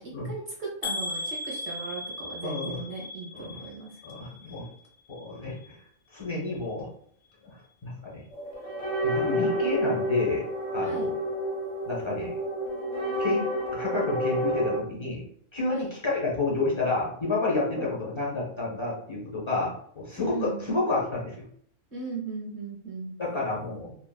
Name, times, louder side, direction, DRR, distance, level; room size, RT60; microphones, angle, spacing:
voice 1, 0.0-4.0 10.8-11.1 15.7-15.9 17.7-17.9 20.2-20.6 21.9-23.1, right 4 dB, 45° right, -3 dB, 0.7 m, -37 dB
sound 1, 0.8-4.8 5.1-5.7 6.2-6.3 6.6-6.7, left 2 dB, 65° left, 0.8 m, -37 dB
voice 2, 2.4-2.8 3.3-3.6 4.0-4.7 5.1-5.8 6.1-6.9 7.8-8.2 9.0-10.4 10.7-11.1 11.8-12.4 13.2-13.4 13.7-15.2 15.5-21.4 23.2-24.0, left 3 dB, 30° left, -4 dB, 0.6 m, -30 dB
sound 2, 8.3-14.8, equal, 90° left, 1.3 m, -29 dB
2.7 x 2.4 x 2.2 m, 0.63 s
omnidirectional pair, 1.3 m